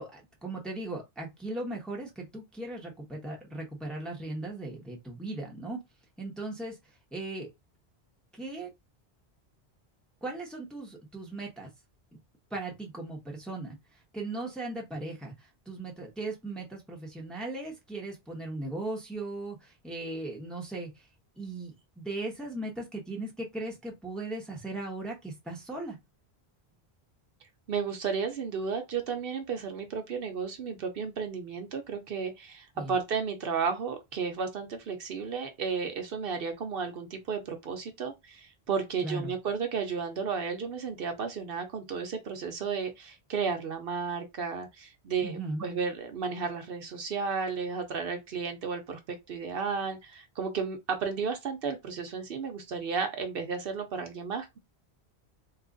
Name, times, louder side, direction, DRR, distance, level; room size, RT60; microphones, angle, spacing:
voice 1, 0.0-5.8 6.2-6.8 7.1-7.5 8.3-8.7 10.2-11.7 12.1-12.2 12.5-13.8 14.1-21.1 21.4-26.0 32.8-32.9 39.0-39.3 45.2-45.7, right 2 dB, ahead, 0.8 m, -38 dB
voice 2, 27.7-49.0 49.3-54.6, right 5 dB, 65° right, 0.8 m, -33 dB
2.9 x 2.4 x 3.7 m
omnidirectional pair, 1.1 m